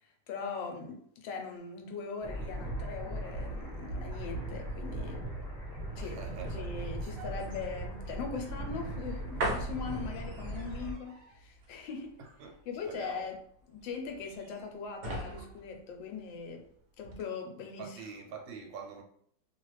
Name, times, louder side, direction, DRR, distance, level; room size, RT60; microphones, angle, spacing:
voice 1, 0.3-5.2 6.0-6.2 6.5-12.2 12.7-13.4 13.7-16.6 17.0-18.0, left 5 dB, 85° left, 1.3 m, -40 dB
sound 1, 2.2-10.9, right 1 dB, ahead, 1.0 m, -39 dB
sound 2, 2.3-16.7 17.0-17.2, right 1 dB, 55° right, 1.0 m, -42 dB
voice 2, 6.0-6.7 7.0-7.2 12.2-13.3 17.8-19.0, right 6 dB, 80° right, 1.3 m, -45 dB
3.1 x 2.3 x 3.1 m
omnidirectional pair, 2.0 m